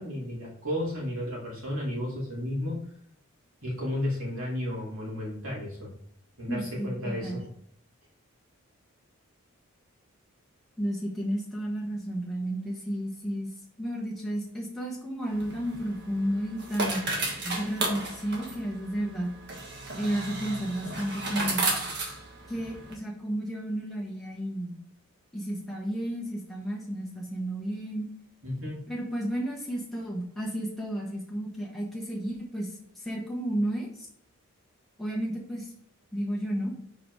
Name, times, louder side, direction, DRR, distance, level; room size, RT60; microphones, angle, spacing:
voice 1, 0.0-2.8 3.6-5.9 6.4-7.5 28.4-28.8, left 1 dB, 75° right, -4 dB, 2.8 m, -33 dB
voice 2, 6.5-7.4 10.8-13.5 13.8-17.0 17.4-19.3 20.0-21.6 22.5-24.8 25.3-28.1 28.9-34.1 35.0-35.7 36.1-36.8, right 1 dB, ahead, -5 dB, 1.1 m, -32 dB
sound 1, 15.3-22.9, right 2 dB, 50° right, 1.4 m, -34 dB
4.8 x 4.7 x 4.7 m, 0.66 s
head